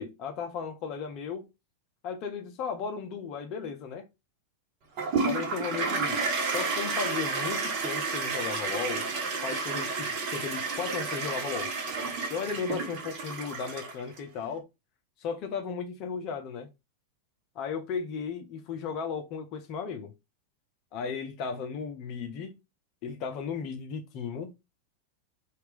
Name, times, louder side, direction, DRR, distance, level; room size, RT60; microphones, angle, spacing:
voice 1, 0.0-1.5 2.0-4.1 5.2-6.3 6.5-9.1 9.4-11.7 12.3-14.6 15.2-16.7 17.5-20.1 20.9-22.6 23.0-24.5, left 6 dB, 40° left, 0.6 m, -35 dB
Toilet flush, 5.0-14.2, right 4 dB, 40° right, 1.0 m, -31 dB
2.9 x 2.4 x 3.3 m
figure-of-eight pair, 90°, 0 cm